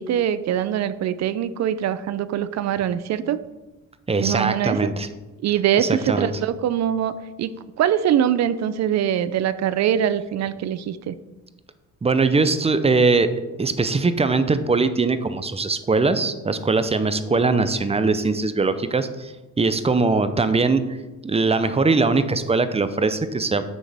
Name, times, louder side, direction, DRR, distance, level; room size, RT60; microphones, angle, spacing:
voice 1, 0.0-3.4 4.2-4.9 5.4-7.1 7.4-11.2, right 10 dB, 65° right, 14 dB, 0.5 m, -23 dB
voice 2, 4.1-5.1 5.8-6.3 12.0-13.3 13.6-19.3 19.6-20.9 21.2-23.6, right 3 dB, 20° right, 11 dB, 0.6 m, -21 dB
9.1 x 6.3 x 3.4 m, 1.1 s
cardioid pair, 90°, 30 cm